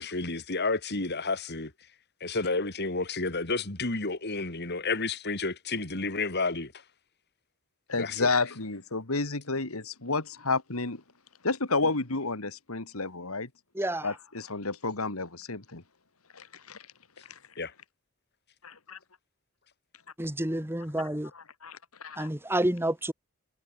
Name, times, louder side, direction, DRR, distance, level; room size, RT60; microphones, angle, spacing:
voice 1, 0.0-1.7 2.2-6.7 8.0-8.3 17.6-17.7, left 3 dB, 50° left, 3.5 m, -31 dB
voice 2, 7.9-11.0 11.4-13.5 14.0-15.8 16.3-16.8 17.3-17.4 18.6-19.0 21.3-22.3, left 3 dB, 85° left, 2.7 m, -31 dB
voice 3, 13.7-14.1 20.2-21.3 22.2-23.1, right 1 dB, 10° right, 2.4 m, -29 dB
head